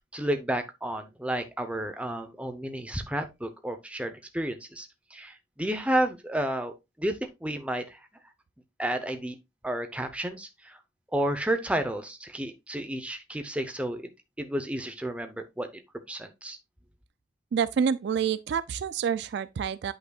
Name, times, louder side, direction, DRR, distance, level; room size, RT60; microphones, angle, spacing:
voice 1, 0.1-6.7 7.0-8.0 8.8-9.4 9.6-10.8 11.1-14.1 14.4-15.7 16.1-16.6, right 1 dB, 5° right, 0.7 m, -31 dB
voice 2, 17.5-19.9, right 7 dB, 60° right, 0.3 m, -27 dB
8.6 x 5.5 x 2.3 m
head